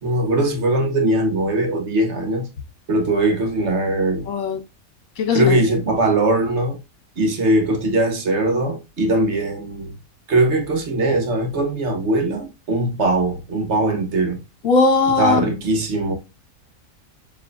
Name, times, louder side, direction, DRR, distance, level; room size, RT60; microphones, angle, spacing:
voice 1, 0.0-2.5 2.9-4.3 5.3-6.8 7.2-9.9 10.3-14.4 15.2-16.2, right 2 dB, 55° right, 1.4 m, -20 dB
voice 2, 4.3-4.6 5.2-5.6 14.6-15.4, left 4 dB, 65° left, 1.7 m, -18 dB
6.7 x 3.0 x 2.5 m
omnidirectional pair, 1.5 m